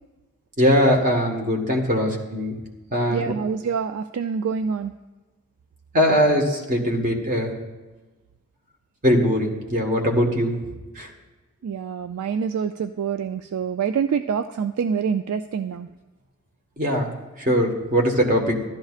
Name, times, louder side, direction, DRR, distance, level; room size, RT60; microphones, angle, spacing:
voice 1, 0.6-2.6 2.9-3.3 5.9-7.5 9.0-10.6 10.9-11.1 16.8-17.1 17.4-18.6, equal, 35° right, 1 dB, 1.4 m, -21 dB
voice 2, 3.1-4.9 11.6-15.9, right 6 dB, 85° right, 9 dB, 0.3 m, -26 dB
14.5 x 12.0 x 2.4 m, 1.2 s
head